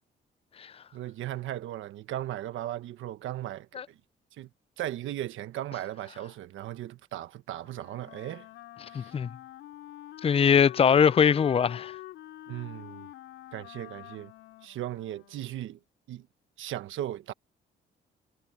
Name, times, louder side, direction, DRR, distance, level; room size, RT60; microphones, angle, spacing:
voice 1, 0.9-4.0 4.4-4.5 4.8-8.5 8.9-9.2 12.5-13.1 13.5-14.3 14.6-15.8 16.1-16.3 16.6-17.3, right 13 dB, 80° right, 1.3 m, -37 dB
Wind instrument woodwind instrument, 7.6-15.8, left 14 dB, 90° left, 3.1 m, -46 dB
voice 2, 8.9-9.3 10.2-11.9, left 7 dB, 30° left, 0.4 m, -21 dB
cardioid pair, 90°, 20 cm